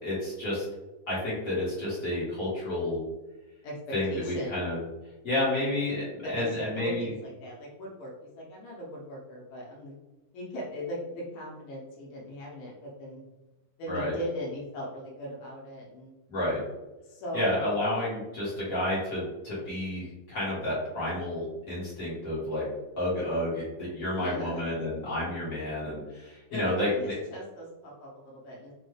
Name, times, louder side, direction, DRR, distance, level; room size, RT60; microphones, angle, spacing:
voice 1, 0.0-0.6 1.1-3.0 3.9-4.8 5.2-7.1 13.9-14.2 16.3-16.6 17.3-22.6 23.0-26.9, left 1 dB, 60° left, -8 dB, 0.9 m, -30 dB
voice 2, 3.6-4.6 6.2-9.9 10.3-13.2 13.8-16.1 17.0-17.5 24.1-24.8 26.5-28.7, equal, 85° left, -4 dB, 2.5 m, -39 dB
5.4 x 2.3 x 3.2 m, 1.1 s
omnidirectional pair, 3.8 m